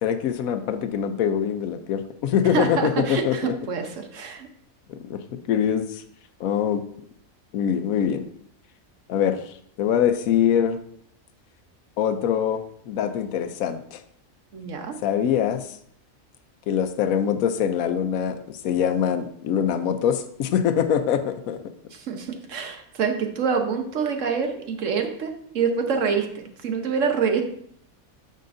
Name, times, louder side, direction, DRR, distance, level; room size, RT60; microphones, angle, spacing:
voice 1, 0.0-3.5 4.9-5.2 5.5-6.0 6.4-6.8 7.5-8.3 9.1-10.8 12.0-14.0 15.0-15.6 16.7-21.6, left 8 dB, 80° left, 9 dB, 1.1 m, -24 dB
voice 2, 2.4-4.5 14.5-15.0 21.9-27.4, right 6 dB, 65° right, 5 dB, 1.3 m, -26 dB
9.2 x 6.5 x 2.6 m, 0.67 s
omnidirectional pair, 1.4 m